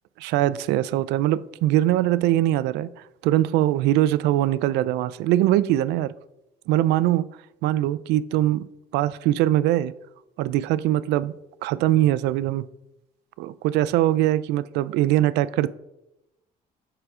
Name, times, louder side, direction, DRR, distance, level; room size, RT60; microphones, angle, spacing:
voice 1, 0.2-2.9 3.2-6.1 6.7-7.3 7.6-8.7 8.9-9.9 10.4-11.3 11.6-12.6 13.4-15.7, right 14 dB, 90° right, 0.5 m, -22 dB
8.1 x 7.4 x 4.9 m
cardioid pair, 110°, 17 cm